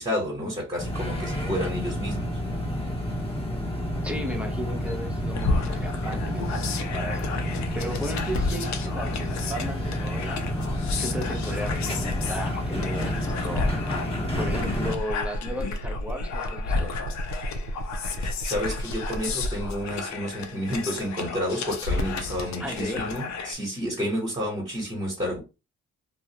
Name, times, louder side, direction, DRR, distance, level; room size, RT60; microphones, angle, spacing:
voice 1, 0.0-2.3 18.2-25.4, equal, 20° right, 1.1 m, -30 dB
sound 1, 0.8-15.0, equal, 20° left, 1.0 m, -30 dB
voice 2, 4.0-7.3 7.7-10.5 11.0-13.7 14.4-17.0 22.6-23.1, equal, 5° right, 0.7 m, -35 dB
sound 2, 5.3-23.5, left 3 dB, 65° left, 0.6 m, -32 dB
sound 3, 14.3-19.5, equal, 60° right, 0.5 m, -34 dB
2.4 x 2.0 x 2.8 m
cardioid pair, 90°, 30 cm